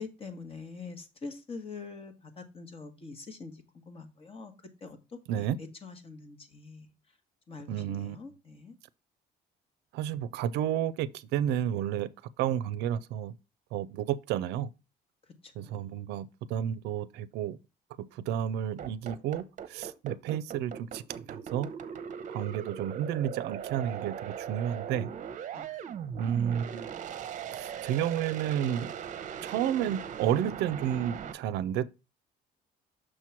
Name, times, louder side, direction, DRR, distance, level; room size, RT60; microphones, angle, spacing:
voice 1, 0.0-4.5 4.8-6.9 7.5-8.8 15.4-16.0 25.5-25.7, left 4 dB, 35° left, 1.3 m, -44 dB
voice 2, 7.7-8.2 9.9-12.1 12.4-13.3 13.7-14.7 15.6-17.6 18.1-21.0 21.3-21.7 22.3-25.1 26.2-26.9 27.5-28.9 29.4-31.9, right 10 dB, 85° right, 0.4 m, -31 dB
sound 1, 18.8-31.3, right 8 dB, 50° right, 0.7 m, -39 dB
6.3 x 3.0 x 5.8 m
cardioid pair, 110°, 17 cm